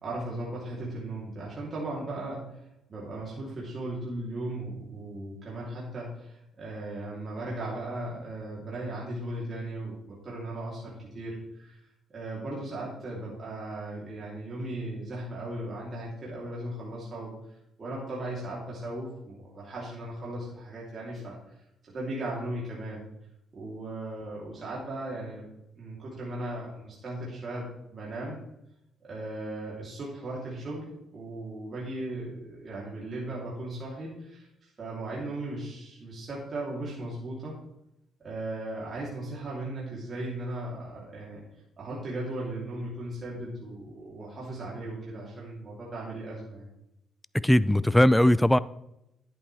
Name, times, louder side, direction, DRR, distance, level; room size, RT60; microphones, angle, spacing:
voice 1, 0.0-2.6 2.9-11.8 12.1-21.4 21.9-23.0 23.5-25.5 25.7-27.7 27.9-28.4 29.0-30.8 31.1-37.6 38.2-41.4 41.8-46.7, right 1 dB, 40° right, -6 dB, 3.1 m, -37 dB
voice 2, 47.3-48.6, left 1 dB, 5° left, 18 dB, 0.3 m, -20 dB
10.5 x 8.7 x 3.4 m, 0.84 s
cardioid pair, 90°, 0 cm